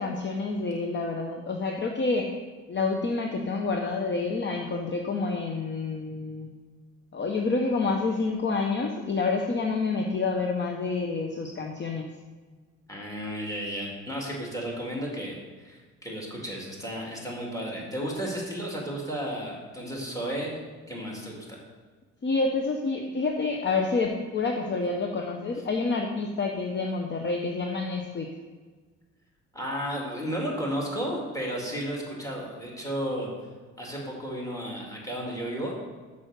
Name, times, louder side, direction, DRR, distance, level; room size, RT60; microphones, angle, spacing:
voice 1, 0.0-2.3 2.7-6.5 7.1-12.1 22.2-28.3, left 3 dB, 40° left, 3 dB, 0.8 m, -28 dB
voice 2, 12.9-15.4 15.6-20.6 20.9-21.6 29.5-33.3 33.8-35.7, equal, 10° left, -2 dB, 2.6 m, -33 dB
6.2 x 5.5 x 6.5 m, 1.4 s
cardioid pair, 90°, 30 cm